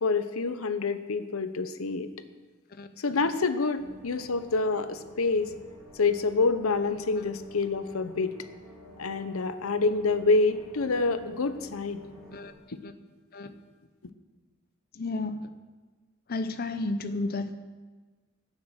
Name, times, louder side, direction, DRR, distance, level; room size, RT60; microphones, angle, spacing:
voice 1, 0.0-2.1 3.0-5.5 5.9-8.4 9.0-12.0, left 3 dB, 90° left, 11 dB, 0.8 m, -27 dB
sound 1, 3.8-12.5, left 1 dB, 20° left, 5.0 m, -50 dB
voice 2, 14.9-15.5 16.3-17.6, left 2 dB, 45° left, 10 dB, 0.6 m, -32 dB
16.0 x 7.4 x 6.5 m, 1.3 s
head